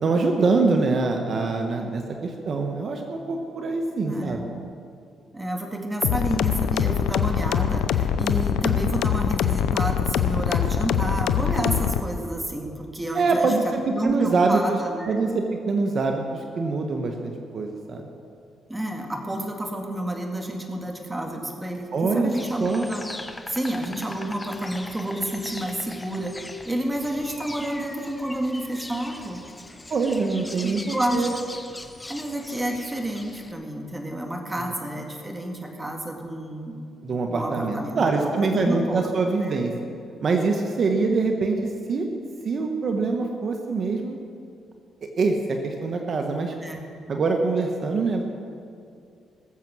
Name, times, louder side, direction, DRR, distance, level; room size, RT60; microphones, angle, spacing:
voice 1, 0.0-4.5 13.1-14.8 15.0-18.1 21.9-22.3 22.6-22.9 29.9-31.3 37.0-39.7 40.2-42.1 42.4-44.2 45.0-46.5 47.1-48.2, right 3 dB, 50° right, 3 dB, 1.2 m, -24 dB
voice 2, 4.1-4.6 5.3-13.5 13.9-15.2 18.7-23.1 23.5-26.4 26.7-29.4 30.6-31.3 32.1-36.8 37.3-39.1 39.4-39.6 46.6-46.8, right 1 dB, 15° right, 2 dB, 2.0 m, -30 dB
sound 1, 6.0-12.0, left 9 dB, 90° left, 0.6 m, -23 dB
Insect, 22.3-33.5, left 2 dB, 15° left, 0.8 m, -40 dB
20.0 x 7.6 x 6.2 m, 2.4 s
cardioid pair, 90°, 0 cm